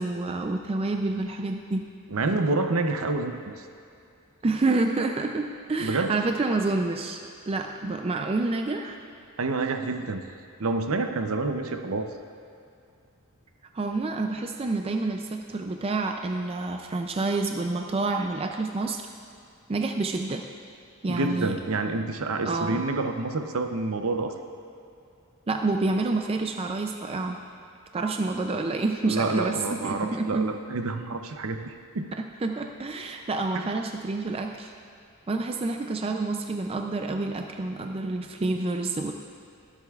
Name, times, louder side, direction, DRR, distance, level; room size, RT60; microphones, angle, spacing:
voice 1, 0.0-1.9 4.4-7.2 7.5-9.0 13.7-19.0 19.7-20.4 21.0-21.5 22.5-22.8 25.5-27.4 27.9-30.5 32.1-34.7 35.3-39.1, right 3 dB, 25° right, 4 dB, 0.4 m, -28 dB
voice 2, 2.1-3.6 5.8-6.1 9.4-10.2 10.6-12.1 21.1-24.3 29.0-32.1 33.5-33.7, right 3 dB, 65° right, 6 dB, 0.7 m, -28 dB
22.0 x 7.9 x 2.4 m, 2.4 s
head